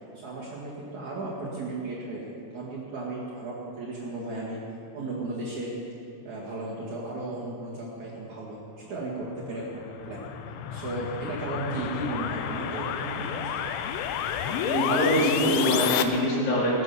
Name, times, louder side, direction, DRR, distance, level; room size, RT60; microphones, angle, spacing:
voice 1, 0.1-4.6 4.9-5.8 6.2-10.2 10.7-13.6, right 2 dB, 50° right, -6 dB, 2.7 m, -35 dB
sound 1, 9.5-16.0, left 9 dB, 85° left, 3.2 m, -30 dB
voice 2, 14.4-16.8, equal, 55° left, -6 dB, 5.4 m, -24 dB
20.0 x 9.7 x 7.1 m, 2.7 s
omnidirectional pair, 5.6 m